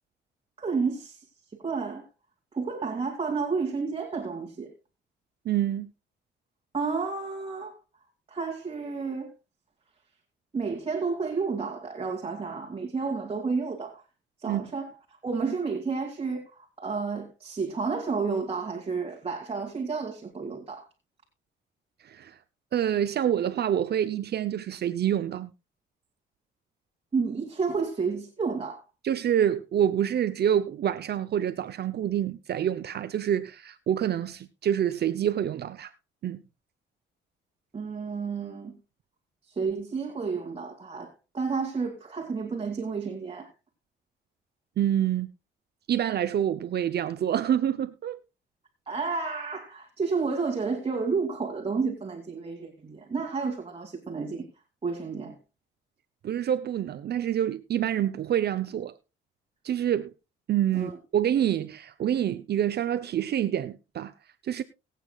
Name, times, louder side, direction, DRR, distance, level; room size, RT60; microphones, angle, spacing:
voice 1, 0.6-1.2 1.5-2.1 2.5-4.7 6.7-7.8 8.3-9.3 10.5-14.0 14.4-14.9 15.2-20.9 27.1-28.8 37.7-38.8 39.5-43.5 48.9-54.5 54.8-55.4 60.7-61.0, right 4 dB, 30° right, 2.4 m, -31 dB
voice 2, 5.4-5.9 14.5-14.6 22.0-22.4 22.7-25.5 29.0-35.9 36.2-36.4 44.8-45.3 45.9-48.2 56.2-58.9 59.6-60.1 60.5-64.1 64.4-64.6, right 10 dB, 55° right, 0.7 m, -27 dB
22.0 x 8.4 x 2.3 m
cardioid pair, 90°, 20 cm